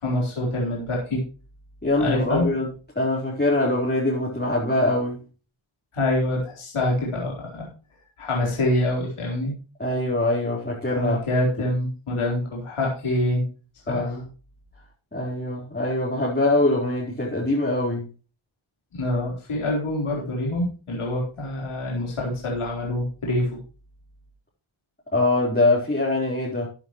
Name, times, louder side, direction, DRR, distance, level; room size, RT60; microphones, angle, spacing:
voice 1, 0.0-1.2 2.0-2.5 5.9-7.7 8.2-9.6 10.9-13.4 13.9-14.2 18.9-23.6, left 1 dB, 85° left, 4.1 m, -25 dB
voice 2, 1.8-2.7 3.0-5.2 9.8-11.2 13.9-14.3 15.1-18.1 25.1-26.7, left 2 dB, 20° left, 4.1 m, -23 dB
14.0 x 9.1 x 3.1 m
wide cardioid pair, 90°, 49 cm